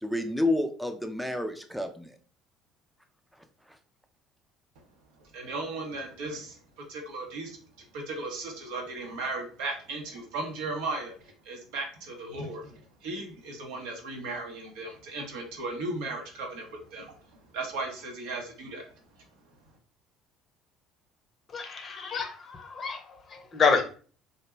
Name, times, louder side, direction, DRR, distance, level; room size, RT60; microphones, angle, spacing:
voice 1, 0.0-2.2, left 1 dB, ahead, 6 dB, 0.4 m, -29 dB
voice 2, 5.3-7.6 7.9-18.9, right 2 dB, 70° right, 2 dB, 0.7 m, -36 dB
voice 3, 21.5-23.8, left 5 dB, 40° left, 5 dB, 0.6 m, -28 dB
2.4 x 2.0 x 3.0 m, 0.41 s
hypercardioid pair, 60°, 0 cm